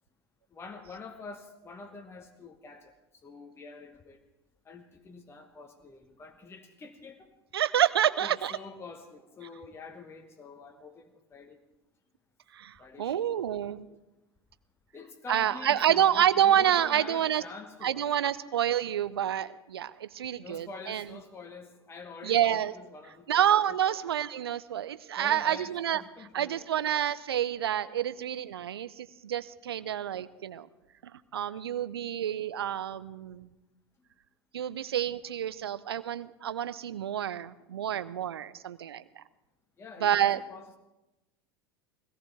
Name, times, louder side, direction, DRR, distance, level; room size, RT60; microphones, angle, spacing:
voice 1, 0.5-2.9 3.2-4.2 4.6-7.3 8.2-11.6 12.8-13.3 14.9-18.1 20.4-24.1 25.2-25.7 26.0-26.7 39.8-40.8, left 4 dB, 20° left, 3 dB, 1.2 m, -46 dB
voice 2, 7.5-8.5 12.5-13.9 15.3-17.4 17.8-21.0 22.2-22.7 23.3-26.0 26.3-30.7 31.3-33.5 34.5-39.2 40.0-40.4, right 10 dB, 70° right, 15 dB, 0.6 m, -28 dB
21.0 x 17.5 x 3.5 m, 0.99 s
figure-of-eight pair, 80°, 13 cm